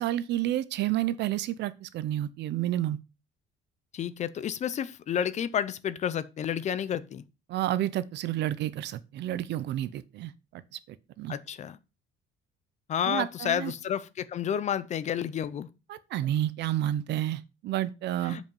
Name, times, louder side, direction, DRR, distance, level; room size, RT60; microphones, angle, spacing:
voice 1, 0.0-3.0 7.5-10.8 11.2-11.4 13.1-13.7 15.9-18.4, right 13 dB, 60° right, 0.7 m, -30 dB
voice 2, 3.9-7.2 11.3-11.8 12.9-15.7 18.2-18.5, left 9 dB, 35° left, 0.5 m, -30 dB
7.8 x 5.2 x 5.4 m
cardioid pair, 165°, 20 cm